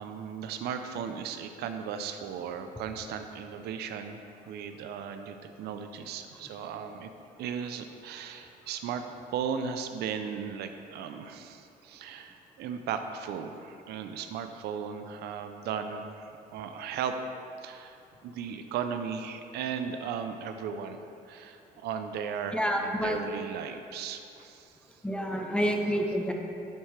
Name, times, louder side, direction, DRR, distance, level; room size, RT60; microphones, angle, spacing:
voice 1, 0.0-4.2 4.5-7.1 7.4-9.0 9.3-17.1 17.6-18.0 18.2-21.0 21.3-24.8, right 7 dB, 75° right, 7 dB, 0.5 m, -36 dB
voice 2, 22.5-23.2 25.0-26.3, equal, 5° left, 2 dB, 0.7 m, -28 dB
10.0 x 4.3 x 3.2 m, 2.6 s
cardioid pair, 110°, 17 cm